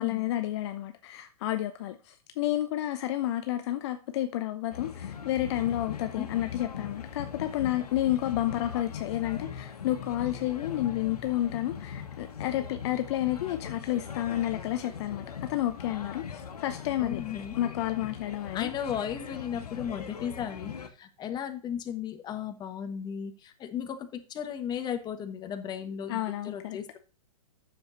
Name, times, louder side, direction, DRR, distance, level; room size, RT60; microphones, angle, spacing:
voice 1, 0.0-17.2 17.6-18.7 26.1-26.8, left 13 dB, 45° left, 0.8 m, -30 dB
sound 1, 4.7-20.9, left 7 dB, 80° left, 1.6 m, -40 dB
voice 2, 17.0-17.7 18.5-27.0, left 8 dB, 20° left, 1.3 m, -35 dB
9.3 x 7.1 x 4.0 m
hypercardioid pair, 125°, 19 cm